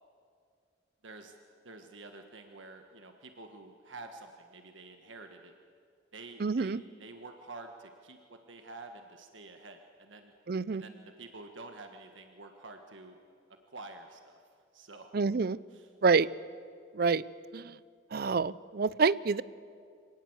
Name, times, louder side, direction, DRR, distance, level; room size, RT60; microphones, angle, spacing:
voice 1, 1.0-1.4 1.6-5.5 6.1-10.3 10.7-13.2 13.7-14.4 14.7-15.1 15.7-15.9, right 3 dB, 75° right, 5 dB, 1.5 m, -49 dB
voice 2, 6.4-6.8 10.5-10.8 15.1-15.6 16.0-16.3 16.9-17.2 17.5-17.8 18.1-19.4, right 4 dB, 50° right, 19 dB, 0.5 m, -27 dB
25.5 x 18.5 x 8.1 m, 2.2 s
head